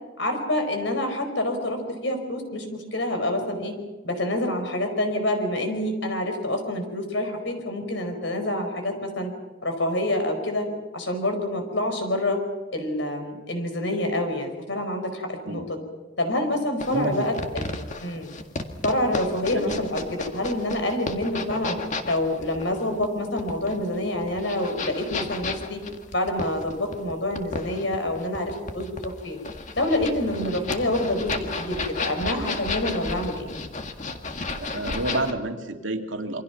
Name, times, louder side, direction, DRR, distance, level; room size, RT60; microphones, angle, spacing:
voice 1, 0.2-3.7 4.0-9.3 9.6-10.7 10.9-12.4 12.7-15.8 16.2-17.3 18.0-18.3 18.8-21.8 22.0-25.8 26.1-29.4 29.7-33.5, left 1 dB, 70° left, 5 dB, 5.0 m, -27 dB
sound 1, 16.8-35.3, left 3 dB, 40° left, 1.9 m, -33 dB
voice 2, 16.9-17.3 19.5-19.8 34.6-36.4, right 2 dB, 90° right, 4 dB, 2.6 m, -29 dB
27.5 x 25.0 x 5.9 m, 1.2 s
head